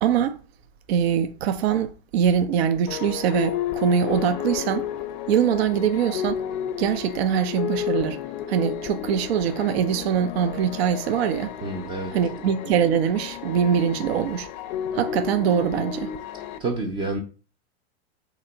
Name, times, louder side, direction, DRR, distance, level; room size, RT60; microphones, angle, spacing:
voice 1, 0.0-0.4 0.9-4.9 5.3-6.4 6.8-8.2 8.5-11.5 12.1-14.5 14.9-16.1, right 8 dB, 70° right, 0.6 m, -23 dB
sound 1, 2.9-16.6, left 10 dB, 45° left, 0.5 m, -32 dB
voice 2, 11.6-12.1 16.6-17.2, right 2 dB, 15° right, 0.4 m, -28 dB
3.3 x 2.9 x 3.9 m
hypercardioid pair, 135°, 33 cm